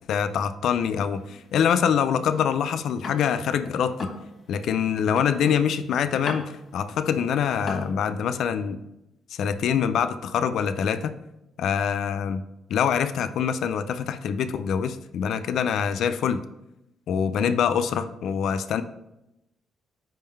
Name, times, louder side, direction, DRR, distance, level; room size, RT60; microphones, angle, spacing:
voice 1, 0.1-4.1 4.5-8.8 9.4-11.2 11.6-12.4 12.7-16.4 17.1-18.8, left 7 dB, 70° left, 10 dB, 0.3 m, -25 dB
sound 1, 0.8-3.5 3.8-7.9, left 2 dB, 30° left, 1.2 m, -39 dB
5.3 x 3.7 x 5.4 m, 0.88 s
cardioid pair, 145°, 0 cm